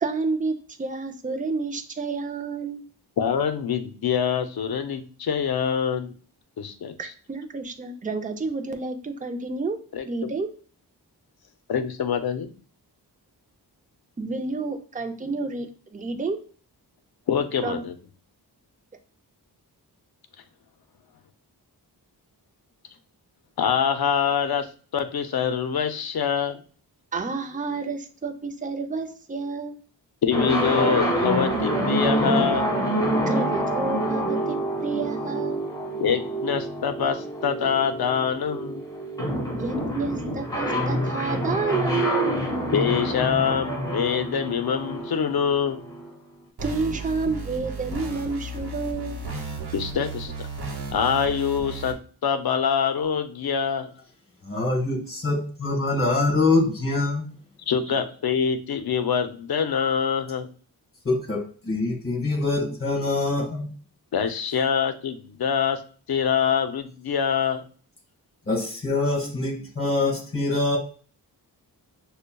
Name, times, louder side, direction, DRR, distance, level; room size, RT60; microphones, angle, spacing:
voice 1, 0.0-2.8 7.0-9.8 10.0-10.5 14.2-16.4 17.6-17.8 27.1-29.7 33.3-35.7 39.6-42.3 46.6-49.2, right 4 dB, 20° right, 6 dB, 0.5 m, -30 dB
voice 2, 3.2-6.1 6.6-6.9 9.9-10.3 11.7-12.5 17.3-17.9 23.6-26.6 30.2-32.7 36.0-38.8 42.7-45.8 49.7-50.5 50.9-53.9 57.7-60.5 64.1-65.8 66.1-67.6, left 7 dB, 65° left, 9 dB, 0.6 m, -25 dB
sound 1, 30.3-46.1, right 1 dB, 10° left, 1.8 m, -27 dB
sound 2, 46.6-51.9, right 3 dB, 65° right, 1.0 m, -34 dB
voice 3, 54.4-57.3 61.0-63.7 68.5-70.8, left 2 dB, 35° left, 1 dB, 1.5 m, -24 dB
6.4 x 2.2 x 2.2 m, 0.41 s
wide cardioid pair, 90°, 40 cm